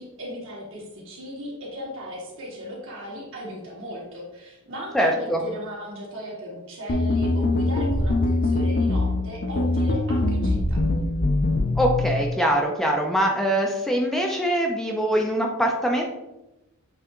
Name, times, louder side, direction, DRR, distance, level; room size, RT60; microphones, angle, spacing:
voice 1, 0.0-10.8, equal, 65° right, -4 dB, 2.2 m, -37 dB
voice 2, 4.9-5.4 11.8-16.0, right 1 dB, ahead, 0 dB, 0.5 m, -23 dB
sound 1, 6.9-12.2, left 2 dB, 50° left, 0.6 m, -23 dB
7.9 x 3.4 x 3.7 m, 0.97 s
head